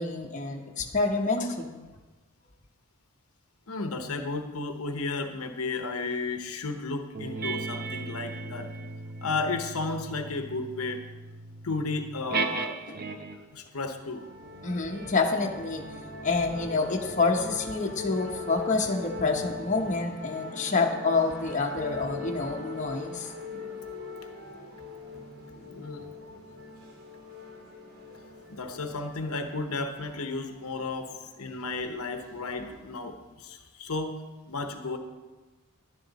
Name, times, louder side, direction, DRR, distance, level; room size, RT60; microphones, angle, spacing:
voice 1, 0.0-1.8 14.6-15.8 16.2-23.3, left 3 dB, 35° left, 1 dB, 0.9 m, -27 dB
voice 2, 3.7-8.7 9.2-11.0 11.6-12.7 13.5-14.2 23.5-23.8 25.6-26.0 28.5-31.1 31.4-34.2 34.5-35.0, left 3 dB, 80° left, 6 dB, 0.9 m, -33 dB
sound 1, 7.1-13.5 14.3-19.2, right 4 dB, 40° right, 0.7 m, -38 dB
sound 2, 14.1-32.9, left 3 dB, 80° right, 2.4 m, -42 dB
11.0 x 10.5 x 4.1 m, 1.2 s
head